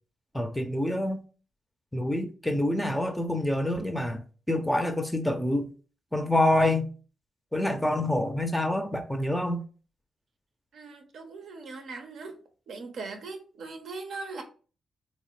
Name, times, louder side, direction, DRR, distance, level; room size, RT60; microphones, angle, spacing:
voice 1, 0.3-1.2 1.9-4.2 4.5-5.7 6.1-6.9 7.5-9.6, left 1 dB, 5° left, 0.5 m, -26 dB
voice 2, 10.7-12.4 12.7-14.4, right 3 dB, 75° right, 0.6 m, -40 dB
3.1 x 2.1 x 3.0 m
cardioid pair, 60°, 0 cm